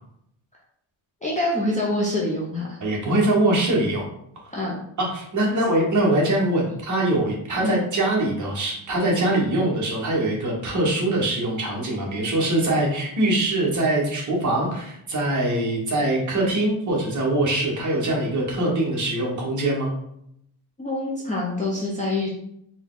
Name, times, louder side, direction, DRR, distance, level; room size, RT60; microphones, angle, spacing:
voice 1, 1.2-2.8 4.5-4.8 7.6-7.8 20.8-22.3, left 1 dB, 15° left, -5 dB, 0.6 m, -25 dB
voice 2, 2.8-4.1 5.0-19.9, right 1 dB, 35° right, -2 dB, 1.2 m, -23 dB
4.4 x 2.3 x 3.7 m, 0.73 s
cardioid pair, 170°, 49 cm